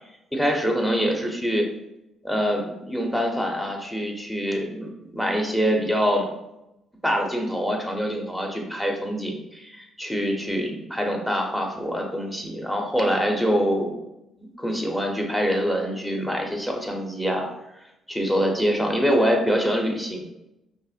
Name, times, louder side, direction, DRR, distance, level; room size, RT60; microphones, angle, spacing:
voice 1, 0.3-1.6 2.2-6.3 7.0-14.0 14.6-17.5 18.1-20.2, equal, 5° left, 1 dB, 0.7 m, -25 dB
5.3 x 2.1 x 2.4 m, 0.89 s
cardioid pair, 100°, 0 cm